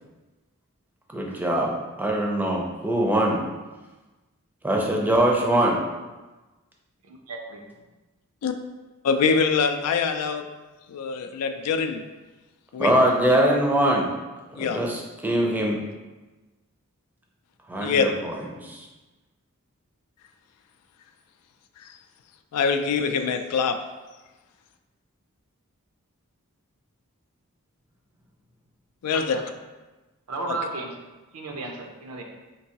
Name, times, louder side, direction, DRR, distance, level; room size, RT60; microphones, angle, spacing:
voice 1, 1.1-1.7 2.0-3.4 4.6-5.8 12.8-14.1 14.5-15.8 17.7-18.8, right 1 dB, 10° right, -1 dB, 0.5 m, -22 dB
voice 2, 7.0-7.6 29.1-29.4 30.3-30.9 31.3-32.2, right 3 dB, 75° right, 2 dB, 0.6 m, -34 dB
voice 3, 9.0-10.4 10.9-12.0 12.7-12.9 14.6-14.8 17.8-18.1 21.8-21.9 22.5-23.8 29.0-29.4, left 5 dB, 90° left, 7 dB, 0.4 m, -24 dB
4.5 x 2.7 x 2.8 m, 1.2 s
head